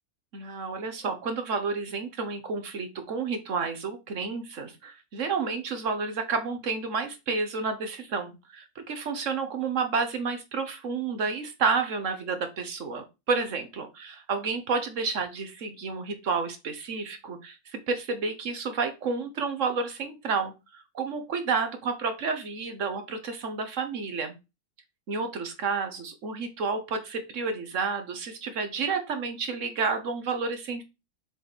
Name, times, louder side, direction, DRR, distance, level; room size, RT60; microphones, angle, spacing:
voice 1, 0.3-24.4 25.1-30.8, right 4 dB, 60° right, 7 dB, 1.3 m, -30 dB
6.9 x 3.3 x 4.1 m, 0.25 s
omnidirectional pair, 1.6 m